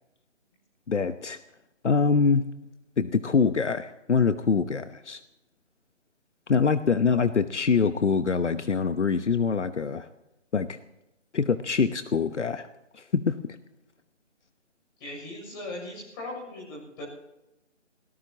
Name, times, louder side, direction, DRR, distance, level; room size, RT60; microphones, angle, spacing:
voice 1, 0.9-1.4 1.8-2.5 3.0-5.2 6.5-10.1 10.5-10.8 11.3-12.7 12.9-13.4, left 5 dB, 70° left, 11 dB, 1.1 m, -24 dB
voice 2, 15.0-17.0, left 2 dB, 20° left, -1 dB, 7.1 m, -38 dB
26.5 x 19.0 x 2.9 m, 0.96 s
figure-of-eight pair, 160°, 37 cm